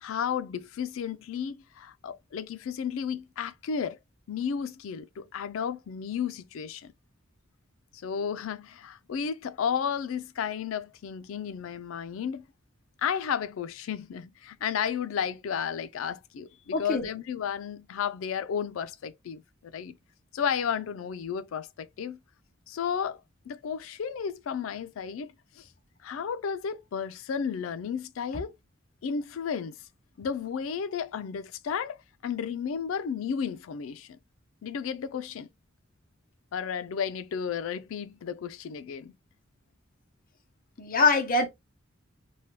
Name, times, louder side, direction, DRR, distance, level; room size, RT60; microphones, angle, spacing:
voice 1, 0.0-4.0 4.3-6.9 7.9-12.4 13.0-20.0 20.3-22.2 22.7-23.2 23.5-25.7 26.0-28.5 29.0-29.8 30.2-34.2 34.6-35.5 36.5-39.1, left 7 dB, 80° left, 0.4 m, -33 dB
voice 2, 16.7-17.1 40.8-41.5, left 3 dB, 45° left, 0.7 m, -23 dB
3.3 x 2.1 x 2.7 m
head